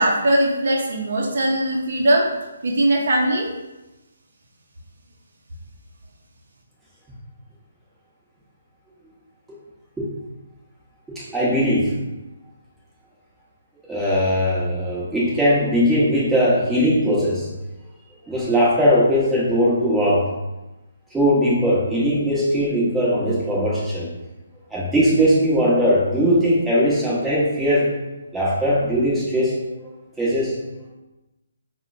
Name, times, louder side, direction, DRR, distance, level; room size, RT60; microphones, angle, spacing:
voice 1, 0.0-2.2 2.6-3.5, right 1 dB, 60° right, -1 dB, 0.6 m, -20 dB
voice 2, 11.1-11.9 13.9-17.5 18.3-20.2 21.1-24.1 24.7-27.9 28.3-29.6 30.2-30.5, equal, 5° right, -8 dB, 1.0 m, -19 dB
4.2 x 2.1 x 2.5 m, 1.0 s
hypercardioid pair, 155°, 0 cm